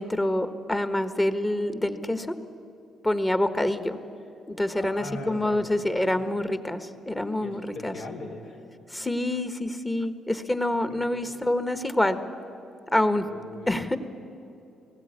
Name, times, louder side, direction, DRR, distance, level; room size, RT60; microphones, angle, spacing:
voice 1, 0.0-2.4 3.0-4.0 4.5-7.9 8.9-12.2 12.9-13.2 13.7-14.0, left 1 dB, 15° left, 10 dB, 1.3 m, -26 dB
voice 2, 4.7-5.6 6.2-6.3 7.4-8.6 10.8-11.3 13.2-14.0, left 2 dB, 75° left, 2 dB, 3.6 m, -40 dB
18.5 x 15.5 x 9.8 m, 2.8 s
cardioid pair, 90°, 0 cm